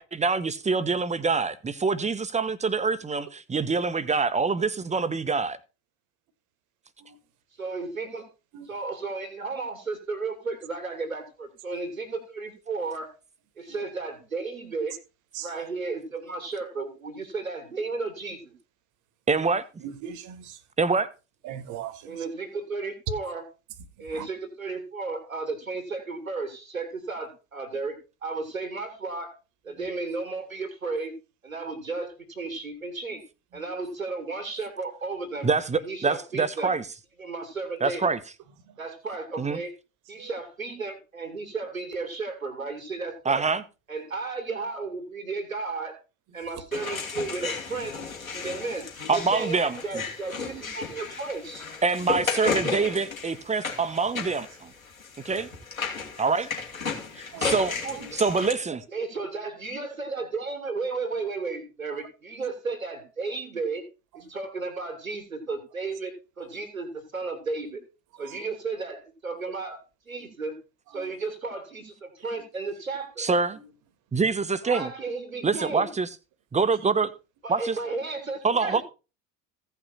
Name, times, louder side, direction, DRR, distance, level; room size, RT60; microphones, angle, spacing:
voice 1, 0.0-5.6 19.3-19.6 20.8-21.1 35.4-36.8 37.8-38.2 39.4-39.6 43.2-43.6 49.1-49.8 51.8-54.7 55.2-55.5 56.2-56.5 57.2-57.8 58.1-58.8 73.2-73.6 74.1-74.9 75.4-76.1 76.5-77.1 77.5-77.8 78.4-78.8, right 4 dB, 15° right, 1.0 m, -25 dB
voice 2, 7.5-8.2 8.6-13.1 13.6-14.9 15.4-18.5 22.1-23.5 24.0-27.9 28.2-29.3 29.6-31.2 31.4-33.2 33.5-35.5 35.8-36.7 37.2-38.2 38.8-39.7 40.1-43.5 43.9-46.0 46.3-48.0 48.3-48.9 49.1-51.6 57.8-58.3 58.9-63.9 64.1-67.8 68.2-69.8 70.1-70.5 70.9-73.3 74.6-75.9 77.4-78.8, right 3 dB, 85° right, 2.5 m, -34 dB
voice 3, 19.8-20.6 21.4-22.2 24.1-24.3 40.2-40.3 57.3-57.5 58.0-58.1 68.2-68.4 70.9-71.1, right 9 dB, 50° right, 1.6 m, -39 dB
sound 1, 46.7-58.5, left 5 dB, 85° left, 2.9 m, -34 dB
16.0 x 5.9 x 4.1 m
figure-of-eight pair, 70°, 40 cm